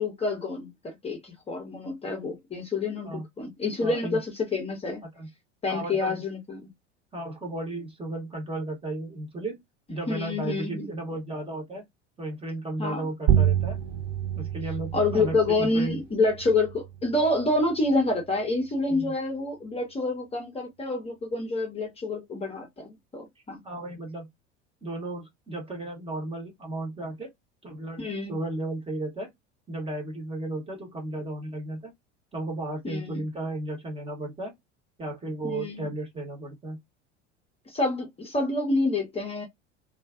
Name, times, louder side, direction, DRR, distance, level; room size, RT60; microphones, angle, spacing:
voice 1, 0.0-5.0 5.6-6.7 10.1-10.9 12.8-13.0 14.9-23.6 28.0-28.3 32.8-33.2 35.4-35.9 37.7-39.5, left 2 dB, 15° left, 0.8 m, -28 dB
voice 2, 3.8-4.2 5.0-5.3 5.7-6.2 7.1-9.6 9.9-11.8 12.2-13.8 14.3-16.0 18.9-19.1 23.6-24.3 24.8-27.3 27.6-29.3 29.7-31.9 32.3-34.5 35.0-36.8, right 2 dB, 15° right, 1.0 m, -34 dB
sound 1, 13.3-18.3, right 10 dB, 40° right, 0.7 m, -29 dB
2.4 x 2.4 x 2.3 m
figure-of-eight pair, 75°, 36 cm